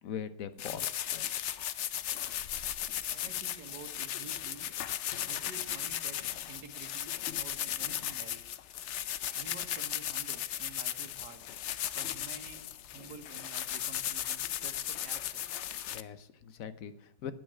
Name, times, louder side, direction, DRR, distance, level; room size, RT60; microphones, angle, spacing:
voice 1, 0.0-0.9 15.9-17.3, left 8 dB, 60° left, 13 dB, 1.2 m, -41 dB
sound 1, 0.6-16.0, left 11 dB, 75° left, 0.6 m, -36 dB
voice 2, 3.1-4.7 5.2-8.6 9.3-11.4 11.9-12.7 12.9-15.4, right 5 dB, 75° right, 5 dB, 1.9 m, -50 dB
9.2 x 9.0 x 9.8 m, 0.81 s
omnidirectional pair, 1.9 m